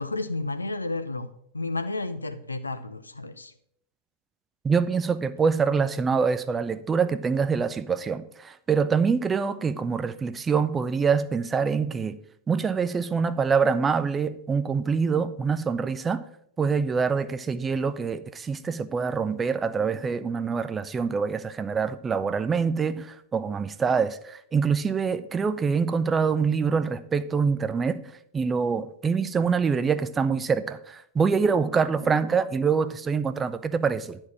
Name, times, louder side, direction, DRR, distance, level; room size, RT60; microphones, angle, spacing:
voice 1, 0.0-3.5, left 2 dB, 80° left, 0.6 m, -32 dB
voice 2, 4.6-12.2 12.5-16.2 16.6-34.2, right 5 dB, 20° right, 0.5 m, -25 dB
11.0 x 4.4 x 6.0 m
figure-of-eight pair, 90°, 0 cm